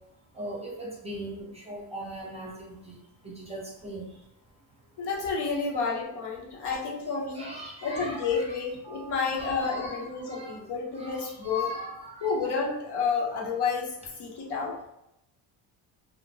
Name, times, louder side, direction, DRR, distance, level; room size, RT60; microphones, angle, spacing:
voice 1, 0.4-2.9 3.2-4.0 6.6-6.8 7.3-8.6 9.2-10.5 11.0-12.3, equal, 15° right, -4 dB, 0.7 m, -39 dB
voice 2, 5.0-11.7 12.2-14.8, left 5 dB, 60° left, -3 dB, 0.9 m, -30 dB
Telephone, 7.4-7.7 8.1-8.4 8.8-9.1 9.6-9.8 10.3-10.5 11.0-11.3 11.7-12.0 12.4-12.7 13.1-13.4, right 3 dB, 85° left, 0.9 m, -48 dB
2.4 x 2.1 x 2.8 m, 0.82 s
cardioid pair, 100°, 45 cm